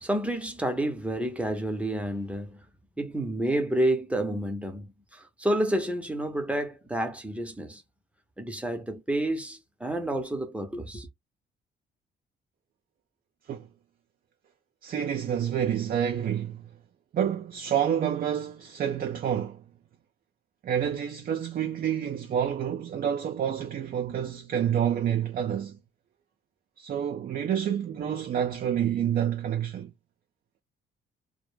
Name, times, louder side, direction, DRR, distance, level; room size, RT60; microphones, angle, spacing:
voice 1, 0.0-2.6 3.0-7.8 8.4-11.1, right 1 dB, 5° right, 0.7 m, -29 dB
voice 2, 14.8-16.7 17.1-19.6 20.6-25.8 26.8-29.9, right 9 dB, 45° right, 0.4 m, -28 dB
2.1 x 2.0 x 3.1 m
cardioid pair, 90°, 20 cm